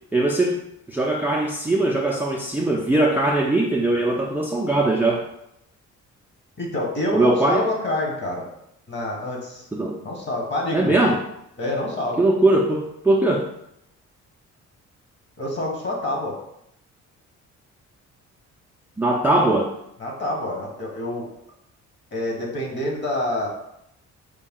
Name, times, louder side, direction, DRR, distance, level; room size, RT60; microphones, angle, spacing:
voice 1, 0.1-0.6 0.9-5.2 7.1-7.7 9.7-10.0 10.7-11.2 12.2-13.5 19.0-19.7, right 2 dB, 5° right, -1 dB, 0.4 m, -20 dB
voice 2, 6.6-8.5 8.9-9.7 10.0-11.0 11.6-12.2 15.4-16.4 20.0-21.3 22.1-23.5, left 1 dB, 35° left, -1 dB, 1.4 m, -27 dB
5.1 x 2.2 x 3.7 m, 0.79 s
cardioid pair, 90°, 30 cm